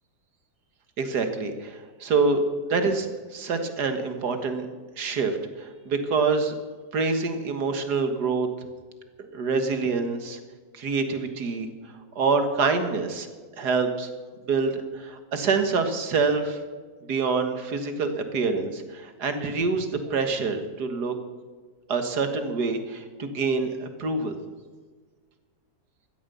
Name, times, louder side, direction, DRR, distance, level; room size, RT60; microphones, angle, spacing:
voice 1, 1.0-4.7 5.0-6.5 6.9-8.7 9.3-10.4 10.7-13.3 13.6-14.1 14.5-16.6 17.0-21.2 21.9-24.4, right 4 dB, 90° right, 7 dB, 2.1 m, -26 dB
15.5 x 13.0 x 7.0 m, 1.5 s
omnidirectional pair, 1.7 m